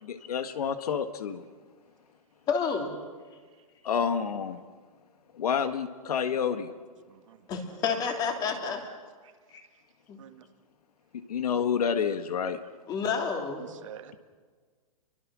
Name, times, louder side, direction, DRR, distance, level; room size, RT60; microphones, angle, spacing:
voice 1, 0.0-1.4 3.8-4.6 5.3-6.7 11.1-12.6, left 7 dB, 75° left, 10 dB, 1.7 m, -29 dB
voice 2, 2.5-2.9 7.5-8.8 9.5-9.6 10.1-10.2 12.9-13.7, left 6 dB, 20° left, 4 dB, 3.0 m, -29 dB
voice 3, 6.0-6.8 7.1-7.4 8.4-8.7 10.2-10.5 13.6-14.2, right 11 dB, 55° right, 8 dB, 1.8 m, -48 dB
29.5 x 23.5 x 6.3 m, 1.6 s
hypercardioid pair, 160°, 19 cm